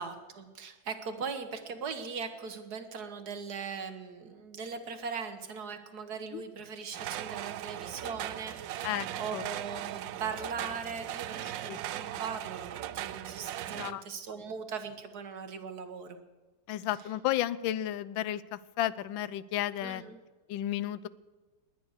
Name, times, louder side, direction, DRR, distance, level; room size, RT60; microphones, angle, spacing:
voice 1, 0.0-16.2 19.8-20.2, right 5 dB, 55° right, 8 dB, 1.8 m, -40 dB
sound 1, 6.9-13.9, right 12 dB, 75° right, 1.3 m, -38 dB
voice 2, 8.8-9.5 11.7-11.8 12.1-12.2 13.7-14.0 16.7-20.0 20.5-21.1, left 13 dB, 80° left, 18 dB, 1.4 m, -33 dB
20.0 x 9.6 x 6.5 m, 1.3 s
omnidirectional pair, 2.2 m